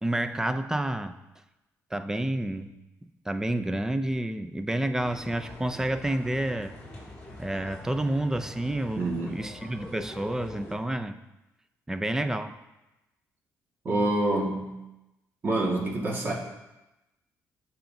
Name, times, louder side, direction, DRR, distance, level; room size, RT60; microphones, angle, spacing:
voice 1, 0.0-1.1 1.9-2.7 3.3-6.8 7.4-11.2 11.9-12.6, right 1 dB, 10° right, 10 dB, 0.4 m, -29 dB
sound 1, 4.9-10.7, left 1 dB, 15° left, 3.1 m, -44 dB
voice 2, 9.0-9.3 13.8-14.7 15.4-16.3, right 2 dB, 35° right, -2 dB, 1.7 m, -27 dB
14.5 x 5.6 x 2.7 m, 0.97 s
cardioid pair, 140°, 6 cm